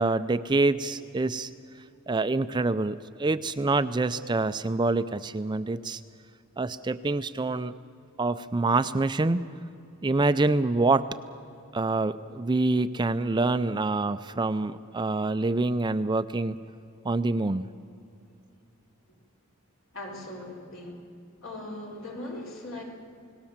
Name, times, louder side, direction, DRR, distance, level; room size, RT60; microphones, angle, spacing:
voice 1, 0.0-1.5 2.1-6.0 6.6-7.7 8.2-9.5 10.0-11.1 11.7-16.6 17.0-17.7, right 3 dB, 20° right, 11 dB, 0.4 m, -26 dB
voice 2, 19.9-21.1 21.4-22.8, left 1 dB, 65° left, -1 dB, 4.2 m, -39 dB
28.5 x 18.5 x 7.3 m, 2.5 s
head